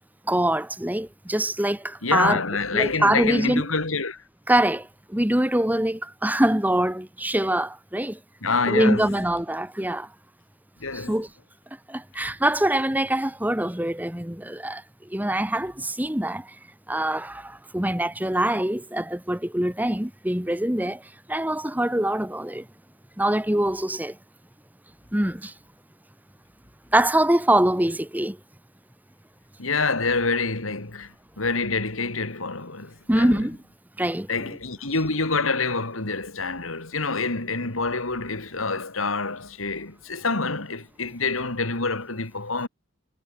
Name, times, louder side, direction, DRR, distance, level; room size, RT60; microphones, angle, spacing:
voice 1, 0.3-2.4 2.7-3.6 4.5-8.2 8.7-10.1 10.9-11.3 11.9-14.8 15.1-16.5 16.9-21.0 21.3-22.6 23.2-24.2 25.1-25.5 26.9-28.4 33.1-33.6 34.0-34.3, right 1 dB, 10° right, 1.5 m, -24 dB
voice 2, 2.0-4.2 8.4-9.1 10.8-11.1 29.6-33.4 34.3-42.7, left 4 dB, 85° left, 3.3 m, -27 dB
head